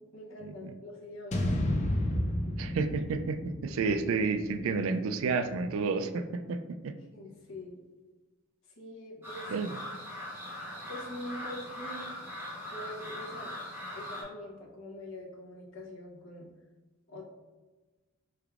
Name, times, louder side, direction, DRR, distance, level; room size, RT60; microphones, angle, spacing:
voice 1, 0.0-1.6 1.9-2.1 7.1-7.8 8.7-9.5 10.9-12.1 12.7-13.5 13.9-16.5 17.1-17.2, left 1 dB, 60° left, -1 dB, 0.8 m, -44 dB
sound 1, 1.3-5.5, left 1 dB, 30° left, 0.4 m, -32 dB
voice 2, 2.6-6.6 6.8-6.9 9.5-9.7, right 4 dB, 65° right, 9 dB, 0.3 m, -30 dB
sound 2, 9.2-14.2, left 1 dB, 10° right, 0.8 m, -41 dB
4.5 x 3.4 x 2.4 m, 1.2 s
head